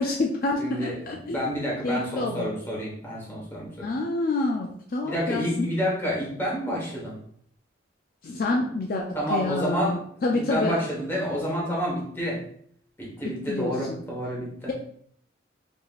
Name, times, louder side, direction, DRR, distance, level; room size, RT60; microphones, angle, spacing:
voice 1, 0.0-1.4 1.8-2.5 3.8-5.7 8.2-9.0 9.3-10.8 13.5-14.0, left 2 dB, 50° left, 0 dB, 0.4 m, -27 dB
voice 2, 0.6-3.9 5.0-7.2 9.1-10.0 10.3-12.4 13.0-14.7, equal, 10° left, -5 dB, 1.2 m, -29 dB
5.4 x 2.9 x 2.4 m, 0.64 s
head